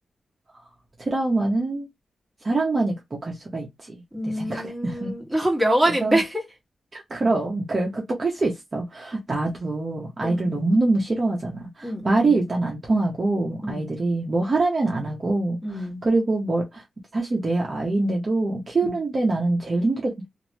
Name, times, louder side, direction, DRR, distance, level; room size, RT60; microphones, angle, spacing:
voice 1, 1.0-1.9 2.4-4.0 4.2-5.1 6.0-6.2 6.9-15.6 16.0-16.8 17.1-20.3, right 2 dB, 30° right, 0.7 m, -24 dB
voice 2, 4.1-6.5 10.2-10.7 11.8-12.4 13.6-13.9 15.6-16.0 18.8-19.0, right 1 dB, ahead, 1.3 m, -25 dB
3.0 x 2.5 x 2.9 m
wide cardioid pair, 140°, 0 cm